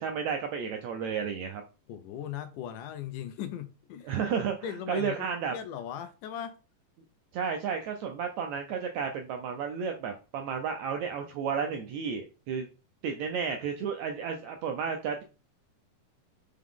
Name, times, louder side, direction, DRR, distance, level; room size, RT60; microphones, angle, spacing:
voice 1, 0.0-1.6 4.0-5.5 7.3-12.7 13.0-15.2, right 6 dB, 80° right, 1.6 m, -32 dB
voice 2, 1.9-4.1 4.6-5.2 5.5-6.6, left 10 dB, 75° left, 2.1 m, -38 dB
5.8 x 4.7 x 3.7 m
omnidirectional pair, 4.0 m